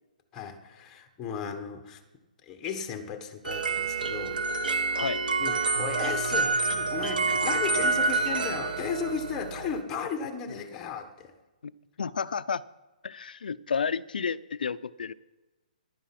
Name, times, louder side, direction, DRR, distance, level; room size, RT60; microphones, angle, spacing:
voice 1, 0.3-2.0 2.4-4.4 5.4-11.3, left 6 dB, 15° left, 6 dB, 1.3 m, -35 dB
sound 1, 3.4-9.8, right 3 dB, 80° right, 1.4 m, -28 dB
voice 2, 12.0-12.6 13.0-15.1, left 6 dB, 80° left, 16 dB, 0.6 m, -31 dB
15.0 x 11.0 x 5.9 m, 1.1 s
hypercardioid pair, 165°, 5 cm